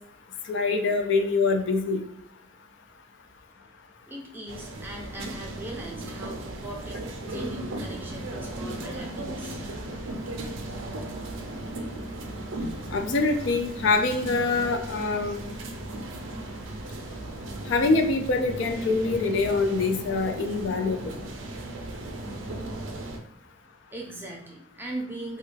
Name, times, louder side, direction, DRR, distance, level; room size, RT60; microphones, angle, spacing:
voice 1, 0.5-2.0 12.9-15.4 17.7-21.1, left 3 dB, 60° left, 5 dB, 0.4 m, -24 dB
voice 2, 4.1-9.6 23.9-25.4, right 1 dB, 10° right, -1 dB, 0.5 m, -39 dB
sound 1, 4.5-23.2, right 1 dB, 75° right, 0.5 m, -36 dB
3.1 x 2.2 x 3.2 m, 0.77 s
head